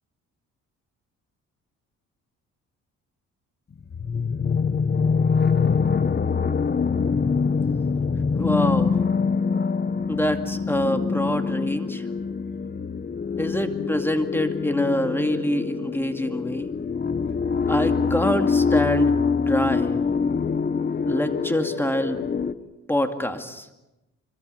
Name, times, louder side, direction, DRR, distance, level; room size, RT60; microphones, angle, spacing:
sound 1, 3.8-22.5, left 5 dB, 35° left, 1.1 m, -24 dB
voice 1, 8.4-9.0 10.1-12.0 13.4-16.7 17.7-19.9 21.1-22.2 22.9-23.7, equal, 5° left, 6 dB, 2.4 m, -25 dB
25.5 x 24.0 x 6.9 m, 0.98 s
cardioid pair, 90°, 30 cm